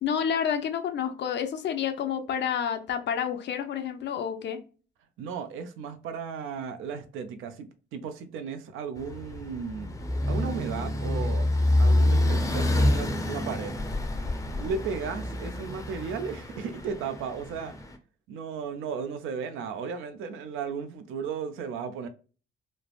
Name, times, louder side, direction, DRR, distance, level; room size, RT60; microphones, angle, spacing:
voice 1, 0.0-4.6, left 8 dB, 60° left, 0.5 m, -29 dB
voice 2, 5.2-9.9 10.3-13.7 14.6-17.7 18.3-22.1, right 6 dB, 85° right, 0.5 m, -35 dB
sound 1, 9.0-17.9, left 1 dB, 15° left, 0.5 m, -27 dB
3.2 x 2.0 x 2.4 m
cardioid pair, 90°, 20 cm